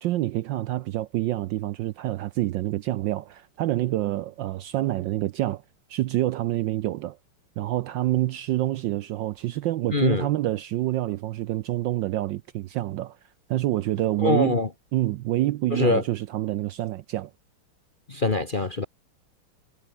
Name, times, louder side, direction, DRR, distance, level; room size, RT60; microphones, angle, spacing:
voice 1, 0.0-5.6 5.9-7.2 7.6-13.2 13.5-14.6 14.9-17.3, right 15 dB, 75° right, 1.1 m, -27 dB
voice 2, 9.9-10.3 14.2-14.7 15.7-16.0 18.1-18.9, left 3 dB, 35° left, 0.9 m, -23 dB
omnidirectional pair, 2.4 m